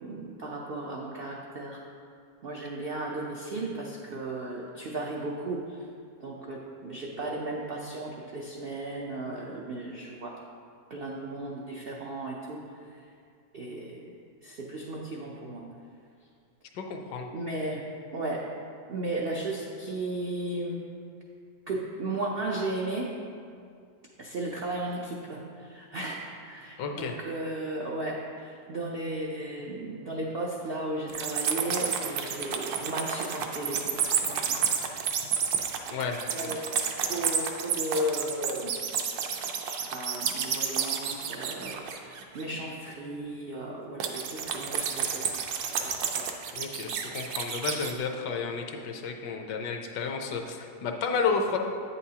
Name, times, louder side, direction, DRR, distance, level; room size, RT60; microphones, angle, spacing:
voice 1, 0.0-1.8 2.4-5.8 6.2-10.3 10.9-12.6 13.5-14.0 14.4-15.6 17.3-17.8 18.1-18.4 18.9-20.8 21.7-23.1 24.2-34.6 36.3-36.6 37.1-38.8 39.6-46.2, right 2 dB, 85° right, -2 dB, 0.5 m, -35 dB
voice 2, 16.7-17.3 26.8-27.2 35.9-36.5 46.5-51.6, left 5 dB, 75° left, 4 dB, 1.3 m, -32 dB
sound 1, 31.1-42.4 44.0-47.9, right 7 dB, 70° right, 1.0 m, -30 dB
8.5 x 7.0 x 2.8 m, 2.3 s
omnidirectional pair, 1.9 m